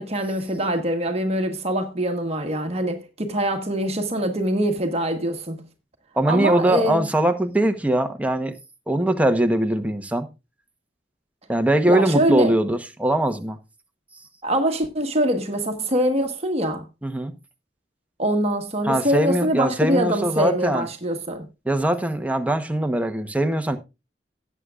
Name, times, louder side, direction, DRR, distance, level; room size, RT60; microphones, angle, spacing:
voice 1, 0.0-5.7 6.3-7.1 11.9-12.5 14.4-16.9 18.2-21.5, right 1 dB, 35° right, 1.3 m, -24 dB
voice 2, 6.2-8.5 8.9-10.3 11.5-13.6 17.0-17.3 18.8-20.9 21.6-23.8, right 1 dB, 10° right, 1.0 m, -21 dB
17.5 x 8.2 x 2.4 m
head